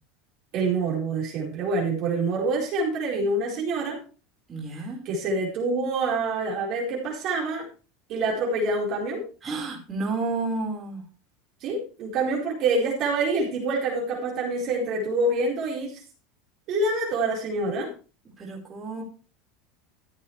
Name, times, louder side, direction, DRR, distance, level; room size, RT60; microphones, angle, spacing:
voice 1, 0.5-4.0 5.1-7.7 8.1-9.2 11.6-16.0 16.7-17.9, right 2 dB, 50° right, -2 dB, 4.4 m, -26 dB
voice 2, 4.5-5.0 9.4-11.0 18.4-19.0, right 3 dB, 20° right, -2 dB, 4.7 m, -31 dB
14.5 x 8.5 x 3.3 m, 0.35 s
supercardioid pair, 130°, 0 cm